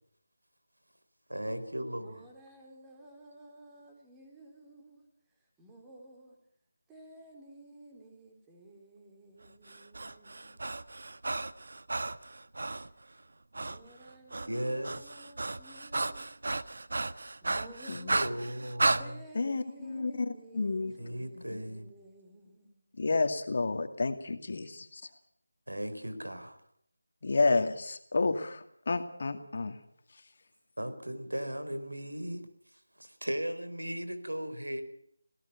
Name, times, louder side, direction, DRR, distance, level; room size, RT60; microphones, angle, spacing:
voice 1, 1.3-2.2 14.4-15.1 18.1-19.1 21.0-21.9 25.7-26.6 30.8-32.4 32.7-34.8, equal, 85° right, 9 dB, 4.4 m, -37 dB
voice 2, 1.9-5.0 5.6-6.4 6.9-10.7 13.5-16.3 17.0-18.2 19.0-22.8, right 1 dB, 10° right, 1 dB, 4.1 m, -53 dB
Breathing, 9.7-12.9 13.5-13.8 14.1-19.0, right 2 dB, 60° right, 1.2 m, -33 dB
voice 3, 19.4-20.9 23.0-25.0 27.2-29.8, left 3 dB, 45° left, 7 dB, 2.4 m, -30 dB
27.5 x 18.0 x 5.9 m, 0.65 s
figure-of-eight pair, 165°, 0 cm